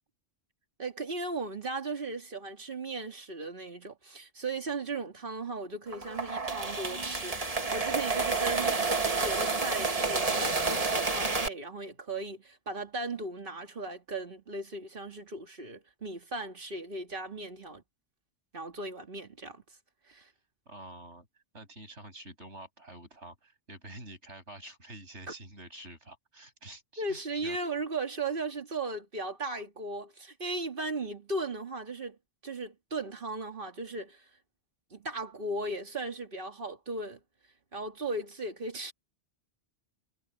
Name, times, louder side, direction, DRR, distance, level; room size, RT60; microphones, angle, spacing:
voice 1, 0.8-8.8 9.2-17.8 18.5-19.6 20.1-20.3 27.0-32.2 32.4-34.3 34.9-37.2 37.7-38.9, right 3 dB, 50° right, 2.2 m, -37 dB
sound 1, 5.9-11.5, right 4 dB, 35° right, 1.5 m, -29 dB
voice 2, 20.6-27.6, right 1 dB, 85° right, 8.4 m, -48 dB
omnidirectional pair, 1.2 m